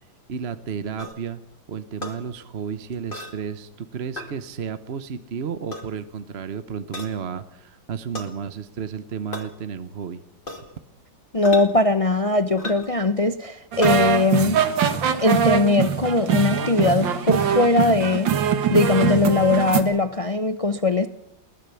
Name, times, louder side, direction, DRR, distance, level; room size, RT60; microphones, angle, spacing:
voice 1, 0.3-1.4 1.7-10.2, right 7 dB, 45° right, 1.0 m, -32 dB
sound 1, 1.0-1.2 2.0-2.2 3.1-3.4 4.2-4.3 5.5-5.9 6.9-7.1 8.1-8.3 9.3-9.5 10.5-10.7 11.4-11.7 12.6-12.9 13.8-14.0, left 1 dB, 30° left, 2.6 m, -34 dB
voice 2, 11.3-14.6 15.1-21.1, left 2 dB, 65° left, 0.3 m, -20 dB
sound 2, 13.7-19.8, right 8 dB, 85° right, 2.2 m, -22 dB
21.5 x 18.5 x 7.0 m
omnidirectional pair, 2.0 m